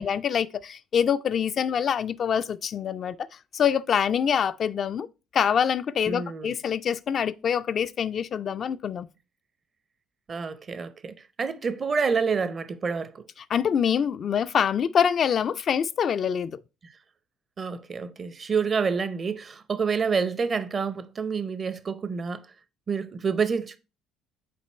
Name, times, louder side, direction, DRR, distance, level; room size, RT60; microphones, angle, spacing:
voice 1, 0.0-3.3 3.5-5.1 5.3-9.1 13.5-16.6, left 8 dB, 50° left, 0.3 m, -25 dB
voice 2, 6.1-6.5 10.3-13.2 17.6-22.5 22.9-23.8, right 5 dB, 40° right, 0.6 m, -28 dB
6.0 x 4.2 x 4.3 m
hypercardioid pair, 55°, 0 cm